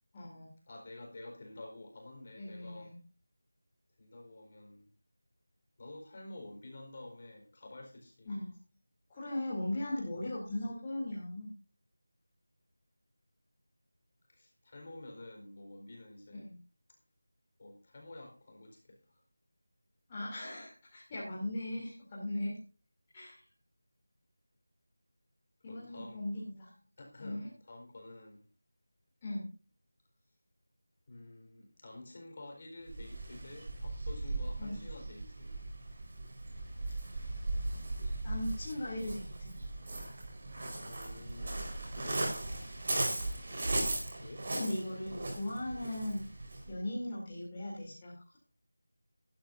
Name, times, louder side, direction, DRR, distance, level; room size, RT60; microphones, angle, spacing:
voice 1, 0.1-0.5 2.4-3.0 8.3-8.5 9.1-11.5 16.3-16.6 20.1-22.6 23.1-23.4 25.6-26.7 27.2-27.5 29.2-29.5 34.6-34.8 38.2-39.6 44.5-46.2 46.7-48.4, left 1 dB, 20° left, -6 dB, 3.0 m, -38 dB
voice 2, 0.7-2.9 4.0-4.9 5.8-8.3 14.3-16.4 17.6-19.2 25.7-26.2 27.0-28.4 31.1-35.5 40.8-42.4 44.2-44.5, left 2 dB, 35° left, 1 dB, 4.5 m, -50 dB
Waves surf, 32.9-46.7, right 2 dB, 40° right, 4.5 m, -38 dB
16.5 x 12.0 x 2.7 m, 0.34 s
figure-of-eight pair, 170°, 0 cm